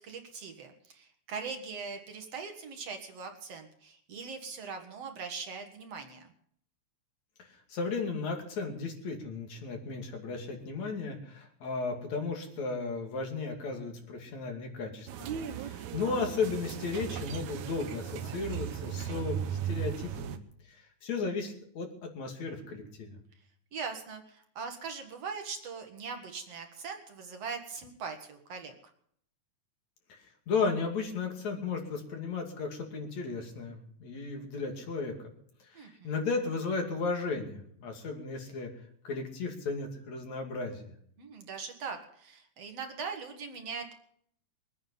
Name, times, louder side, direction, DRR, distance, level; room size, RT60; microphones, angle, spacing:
voice 1, 0.0-6.3 15.3-15.8 23.7-28.8 35.7-36.1 41.2-43.9, right 5 dB, 55° right, 5 dB, 2.6 m, -41 dB
voice 2, 7.7-15.3 15.6-20.4 21.0-23.2 30.5-35.3 35.8-38.7 39.0-40.9, left 4 dB, 65° left, 3 dB, 3.7 m, -35 dB
sound 1, 15.1-20.4, right 9 dB, 70° right, 2.3 m, -37 dB
23.0 x 9.4 x 5.5 m, 0.65 s
omnidirectional pair, 3.5 m